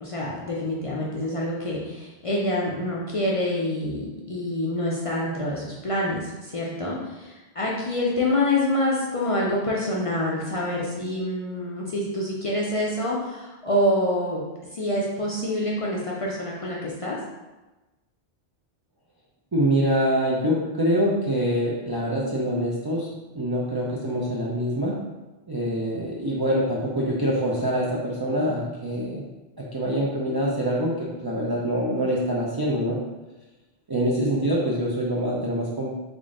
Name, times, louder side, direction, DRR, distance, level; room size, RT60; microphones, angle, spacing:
voice 1, 0.0-14.4 14.7-17.2, left 1 dB, 45° left, -4 dB, 0.5 m, -26 dB
voice 2, 19.5-25.1 25.5-29.2 29.7-33.0 33.9-35.9, equal, 40° right, -5 dB, 0.3 m, -25 dB
3.6 x 2.5 x 3.6 m, 1.1 s
omnidirectional pair, 1.1 m